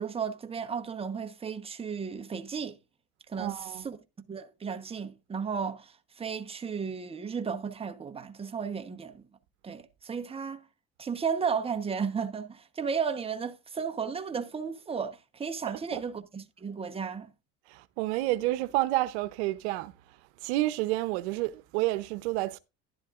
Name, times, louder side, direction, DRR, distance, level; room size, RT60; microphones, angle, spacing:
voice 1, 0.0-2.7 3.3-4.0 4.3-9.3 9.6-10.6 11.0-17.3, right 6 dB, 15° right, 1.0 m, -34 dB
voice 2, 3.3-3.9 15.6-16.0 17.7-22.6, right 17 dB, 80° right, 0.8 m, -30 dB
11.5 x 10.5 x 2.5 m
supercardioid pair, 110°, 32 cm